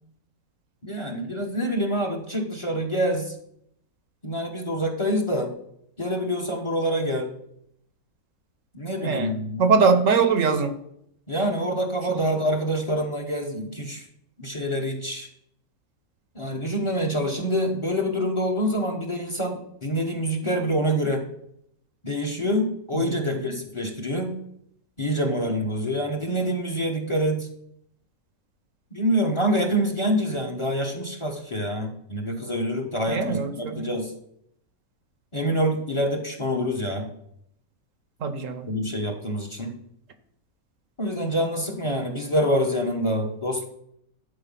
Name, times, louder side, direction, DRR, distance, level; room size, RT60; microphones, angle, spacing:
voice 1, 0.8-3.3 4.2-5.5 6.0-7.3 8.7-9.7 11.3-14.1 14.4-15.3 16.3-21.2 22.0-24.3 25.0-27.5 28.9-34.1 35.3-37.1 38.7-39.8 41.0-43.6, equal, 20° left, 3 dB, 1.1 m, -26 dB
voice 2, 9.0-10.8 12.1-12.2 22.9-23.6 33.1-33.9 38.2-38.7, right 5 dB, 70° right, 9 dB, 1.1 m, -23 dB
11.5 x 4.6 x 5.7 m, 0.73 s
omnidirectional pair, 1.5 m